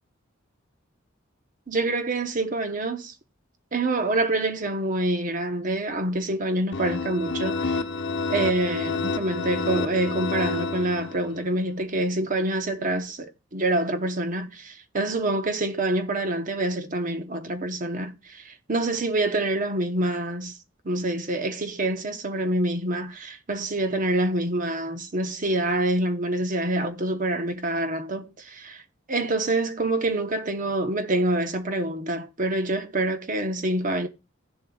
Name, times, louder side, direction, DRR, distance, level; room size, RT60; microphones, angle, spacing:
voice 1, 1.7-3.1 3.7-7.8 8.3-20.6 20.8-28.8 29.1-34.1, right 2 dB, 40° right, 0.9 m, -26 dB
sound 1, 6.7-11.5, left 3 dB, 65° left, 0.9 m, -29 dB
17.0 x 7.3 x 2.3 m
head